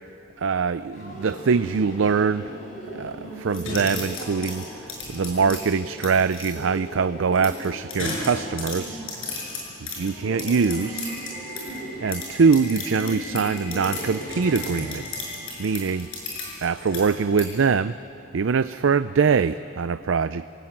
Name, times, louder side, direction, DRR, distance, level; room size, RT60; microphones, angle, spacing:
voice 1, 0.4-2.5 3.0-9.0 10.0-11.1 12.0-15.0 15.6-16.1 16.6-18.0 18.3-20.5, right 5 dB, 75° right, 13 dB, 0.5 m, -23 dB
Subway metro underground, 0.9-16.9, right 1 dB, 35° left, 7.7 m, -38 dB
sound 1, 3.5-6.5 7.3-11.8 12.1-17.4, left 3 dB, 85° left, 7.0 m, -35 dB
28.0 x 18.0 x 8.9 m, 2.7 s
head